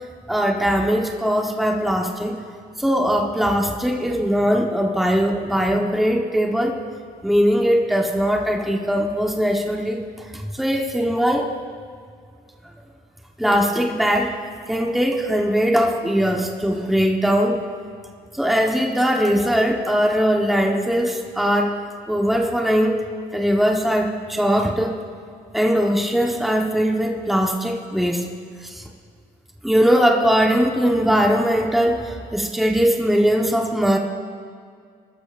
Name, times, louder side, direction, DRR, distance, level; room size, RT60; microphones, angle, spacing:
voice 1, 0.3-2.4 2.8-6.8 7.2-10.0 10.3-11.5 13.4-14.4 14.7-17.6 18.4-21.8 22.1-23.0 23.3-25.0 25.5-28.3 28.7-28.8 29.6-34.0, equal, ahead, 1 dB, 1.2 m, -20 dB
24.5 x 13.5 x 2.6 m, 2.2 s
cardioid pair, 110°, 17 cm